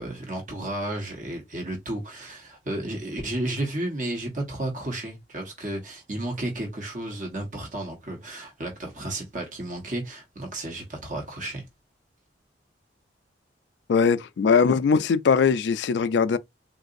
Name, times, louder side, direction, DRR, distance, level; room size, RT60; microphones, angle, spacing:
voice 1, 0.0-11.6, right 1 dB, 45° right, 1.1 m, -32 dB
voice 2, 13.9-16.4, left 5 dB, 70° left, 0.3 m, -21 dB
3.8 x 2.5 x 2.5 m
head